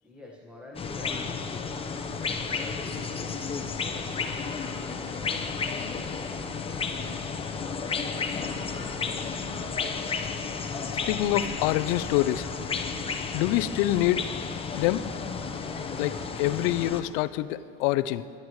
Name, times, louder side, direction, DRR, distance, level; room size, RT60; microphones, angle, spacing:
voice 1, 0.0-1.9 2.4-3.4 3.7-4.7, left 2 dB, 5° right, -2 dB, 1.6 m, -45 dB
sound 1, 0.8-17.0, left 5 dB, 20° left, 0.9 m, -32 dB
voice 2, 11.1-12.5 13.3-14.3 14.8-15.1 16.0-18.3, left 15 dB, 55° left, 15 dB, 0.6 m, -26 dB
23.5 x 11.0 x 3.2 m, 2.8 s
hypercardioid pair, 100°, 31 cm